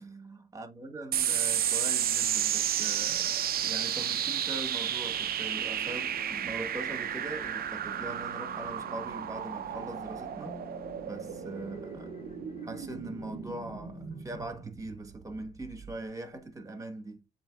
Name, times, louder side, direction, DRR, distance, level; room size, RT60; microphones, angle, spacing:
voice 1, 0.0-10.7 11.0-12.2 12.6-17.2, right 2 dB, 15° right, 1.1 m, -41 dB
sound 1, 1.1-15.9, right 10 dB, 50° right, 0.4 m, -32 dB
sound 2, 5.4-14.2, left 5 dB, 35° left, 0.5 m, -49 dB
7.6 x 3.1 x 2.2 m
cardioid pair, 90°, 20 cm